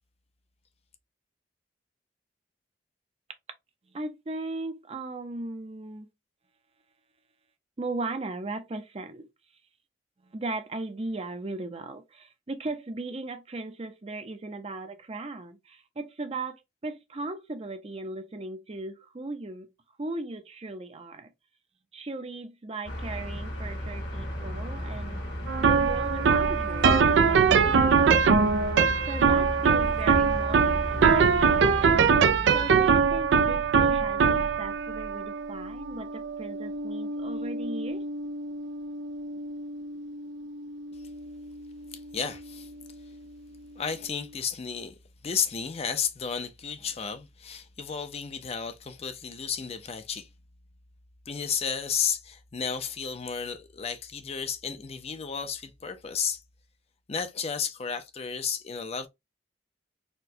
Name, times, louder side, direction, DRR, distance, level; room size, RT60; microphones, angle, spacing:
voice 1, 3.9-6.1 7.8-9.3 10.2-19.7 20.0-21.3 21.9-25.2 25.6-28.4 29.1-32.1 32.5-38.1, right 2 dB, 35° right, 0.6 m, -37 dB
sound 1, 22.8-32.0, equal, 80° left, 1.8 m, -35 dB
sound 2, 25.5-42.7, right 5 dB, 90° right, 0.4 m, -24 dB
voice 2, 42.1-42.7 43.8-44.9 45.2-50.3 51.3-56.4 57.1-59.1, left 7 dB, 35° left, 0.5 m, -32 dB
4.3 x 2.2 x 2.7 m
head